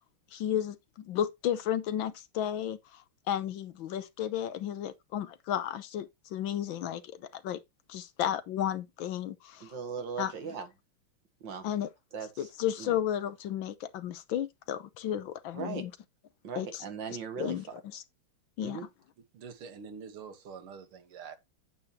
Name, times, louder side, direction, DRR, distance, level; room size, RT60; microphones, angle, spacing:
voice 1, 0.3-7.0 7.3-7.6 7.9-9.7 10.2-10.3 11.6-11.9 12.4-15.9 16.6-16.8 17.4-17.6 17.9-18.0 18.6-18.8, left 10 dB, 70° left, 1.4 m, -33 dB
voice 2, 9.6-10.7 11.4-11.7 12.1-12.5 12.8-13.0 15.5-15.9 16.4-17.8 18.6-18.9, right 6 dB, 60° right, 2.2 m, -39 dB
voice 3, 19.3-21.4, right 6 dB, 80° right, 2.1 m, -45 dB
8.7 x 8.7 x 2.8 m
omnidirectional pair, 2.4 m